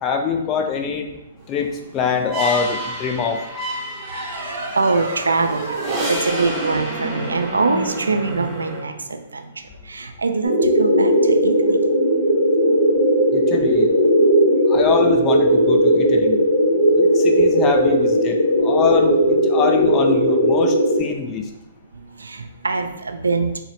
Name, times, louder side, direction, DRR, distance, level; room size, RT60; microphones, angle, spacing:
voice 1, 0.0-1.1 1.5-3.4 13.3-13.9 14.7-16.4 16.9-21.4, left 6 dB, 25° left, 3 dB, 0.4 m, -23 dB
sound 1, 1.6-8.8, equal, 15° right, 0.8 m, -30 dB
sound 2, 4.0-9.2, right 2 dB, 55° right, 0.7 m, -31 dB
voice 2, 4.3-5.8 6.1-9.4 9.9-11.8 21.3-21.4 22.2-23.6, right 3 dB, 90° right, 7 dB, 0.3 m, -23 dB
sound 3, 10.4-21.0, equal, 60° left, 1.1 m, -17 dB
3.8 x 2.0 x 2.8 m, 0.90 s
hypercardioid pair, 130°, 0 cm